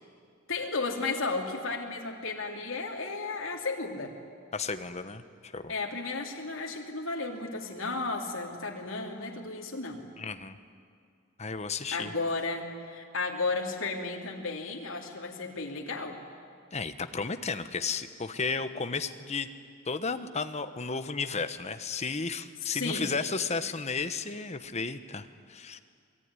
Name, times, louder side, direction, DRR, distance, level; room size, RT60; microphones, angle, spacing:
voice 1, 0.5-4.1 5.7-10.0 11.9-16.2 22.6-23.1, left 3 dB, 75° left, 0 dB, 3.2 m, -33 dB
voice 2, 4.5-5.7 10.2-10.6 11.4-12.1 16.7-19.5 19.8-25.8, left 4 dB, 35° left, 10 dB, 1.1 m, -33 dB
27.0 x 20.5 x 9.8 m, 2.3 s
head